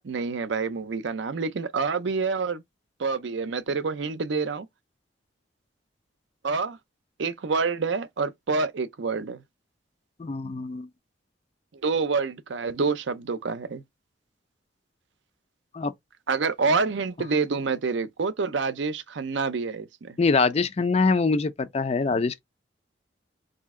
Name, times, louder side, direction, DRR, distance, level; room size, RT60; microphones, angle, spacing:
voice 1, 0.0-2.6 3.0-4.7 6.4-6.8 7.2-9.4 11.8-13.8 16.3-20.2, right 4 dB, 70° right, 0.5 m, -27 dB
voice 2, 10.2-10.9 15.7-15.9 20.2-22.4, left 4 dB, 30° left, 0.4 m, -24 dB
4.0 x 2.7 x 3.6 m
head